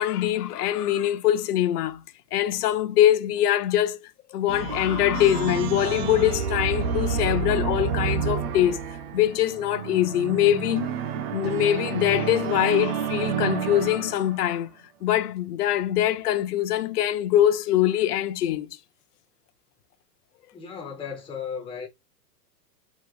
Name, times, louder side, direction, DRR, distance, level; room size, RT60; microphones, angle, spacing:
voice 1, 0.0-2.0 2.3-8.8 9.1-10.9 11.3-14.7 15.0-18.7, left 12 dB, 70° left, 0.8 m, -23 dB
sound 1, 4.5-14.5, right 7 dB, 40° right, 0.5 m, -29 dB
voice 2, 20.5-21.9, left 6 dB, 10° left, 0.6 m, -35 dB
3.7 x 3.0 x 2.3 m
supercardioid pair, 150°, 49 cm